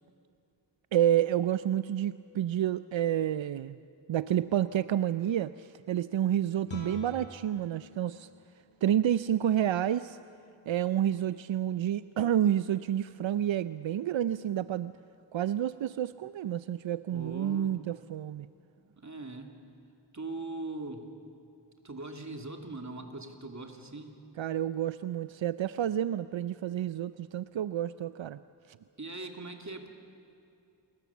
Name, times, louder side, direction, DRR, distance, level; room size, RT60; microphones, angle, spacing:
voice 1, 0.9-3.8 4.1-8.3 8.8-10.2 10.7-14.9 15.3-18.5 24.4-28.4, right 11 dB, 85° right, 14 dB, 0.5 m, -29 dB
Guitar, 6.6-12.2, left 3 dB, 90° left, 4.1 m, -50 dB
voice 2, 17.1-17.8 18.8-19.5 20.1-21.0 21.8-24.2 29.0-29.9, right 2 dB, 40° right, 3 dB, 2.6 m, -41 dB
27.5 x 21.0 x 7.2 m, 2.6 s
wide cardioid pair, 55°, 45 cm